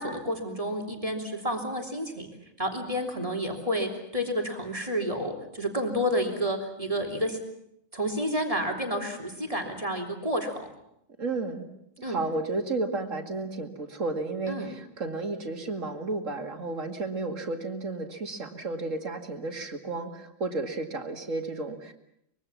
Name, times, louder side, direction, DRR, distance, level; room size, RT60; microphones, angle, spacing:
voice 1, 0.0-2.3 2.6-7.4 7.9-10.6 12.0-12.2 14.5-14.7, equal, 25° right, 2 dB, 3.4 m, -30 dB
voice 2, 11.2-11.7 12.0-21.9, right 3 dB, 75° right, 5 dB, 2.6 m, -32 dB
24.5 x 22.5 x 7.3 m, 0.76 s
omnidirectional pair, 1.4 m